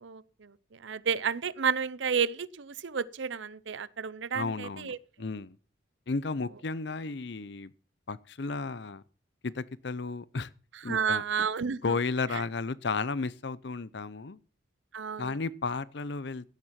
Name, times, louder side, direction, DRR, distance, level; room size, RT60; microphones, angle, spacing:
voice 1, 0.0-5.0 10.9-11.8 14.9-15.3, right 6 dB, 65° right, 0.6 m, -31 dB
voice 2, 4.3-5.6 6.1-7.7 8.1-9.0 9.4-10.5 10.8-11.2 11.8-14.4 15.2-16.5, left 4 dB, 60° left, 0.6 m, -33 dB
16.0 x 7.5 x 5.8 m
head